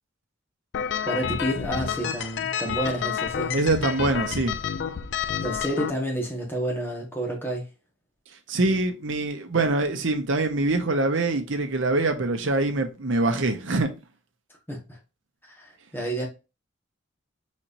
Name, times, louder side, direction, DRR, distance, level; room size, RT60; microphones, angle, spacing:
sound 1, 0.7-5.9, left 8 dB, 55° left, 0.4 m, -29 dB
voice 1, 1.0-3.6 5.4-7.7 14.7-15.0 15.5-16.3, right 1 dB, 10° left, 1.4 m, -30 dB
voice 2, 3.5-4.6 8.5-13.9, right 2 dB, 65° right, 0.8 m, -24 dB
4.5 x 4.2 x 2.6 m
head